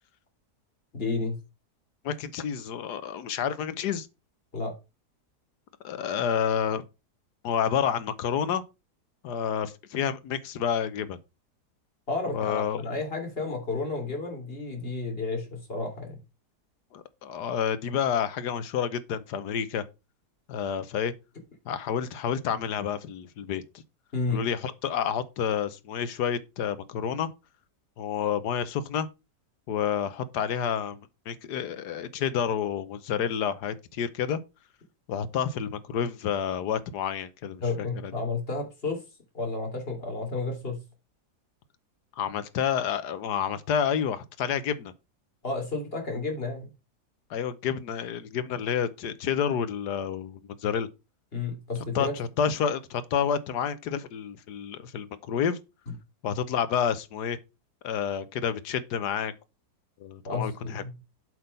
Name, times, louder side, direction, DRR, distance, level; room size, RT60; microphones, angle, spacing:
voice 1, 0.9-1.4 4.5-4.7 12.1-16.2 24.1-24.4 37.6-39.0 39.3-40.8 45.4-46.7 51.3-52.1 60.2-60.9, left 3 dB, 35° left, 3.3 m, -31 dB
voice 2, 2.0-4.1 5.8-6.8 7.4-8.6 9.2-11.2 12.2-12.9 16.9-19.9 20.5-21.1 21.6-23.8 24.3-27.3 28.0-29.1 29.7-34.4 35.1-38.1 42.2-44.9 47.3-50.9 51.9-55.6 56.2-57.4 57.8-59.3 60.0-60.8, left 8 dB, 80° left, 1.5 m, -29 dB
7.9 x 6.1 x 5.3 m
omnidirectional pair, 1.8 m